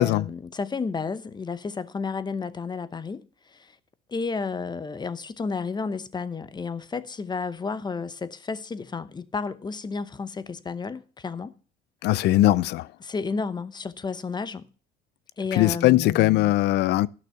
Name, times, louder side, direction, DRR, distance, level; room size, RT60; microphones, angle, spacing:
voice 1, 0.0-3.7 4.1-11.5 13.0-14.7 15.4-16.5, left 4 dB, 20° left, 0.8 m, -32 dB
voice 2, 12.0-12.9 15.5-17.1, left 15 dB, 60° left, 0.5 m, -20 dB
12.0 x 6.0 x 5.8 m
supercardioid pair, 85°, 20 cm